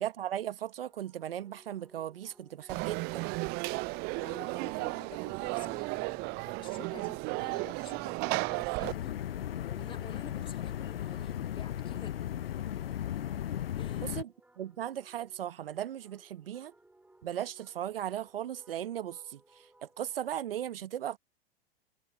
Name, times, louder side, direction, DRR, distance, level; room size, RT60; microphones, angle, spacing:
voice 1, 0.0-3.3 14.2-14.3 14.6-16.7 17.2-19.4 19.8-21.2, right 11 dB, 65° right, 1.1 m, -37 dB
sound 1, 0.8-20.4, right 2 dB, 5° right, 7.4 m, -60 dB
Conversation / Crowd, 2.7-8.9, right 28 dB, 35° right, 0.6 m, -34 dB
voice 2, 4.1-5.9 6.4-9.1 9.6-12.2 13.7-14.2, left 6 dB, 15° left, 2.9 m, -50 dB
sound 2, 8.8-14.2, left 11 dB, 70° left, 0.8 m, -36 dB
figure-of-eight pair, 95°, 31 cm